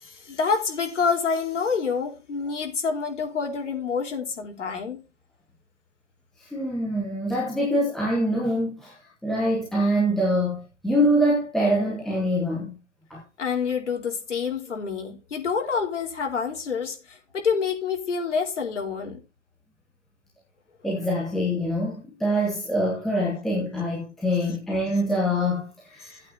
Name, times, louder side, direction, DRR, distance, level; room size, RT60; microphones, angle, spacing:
voice 1, 0.0-5.0 13.4-19.2 26.0-26.1, left 5 dB, 85° left, 4.2 m, -27 dB
voice 2, 6.4-9.0 9.2-12.8 13.1-13.2 20.8-26.2, equal, ahead, 1.2 m, -24 dB
16.0 x 8.8 x 2.7 m
hypercardioid pair, 170°, 35 cm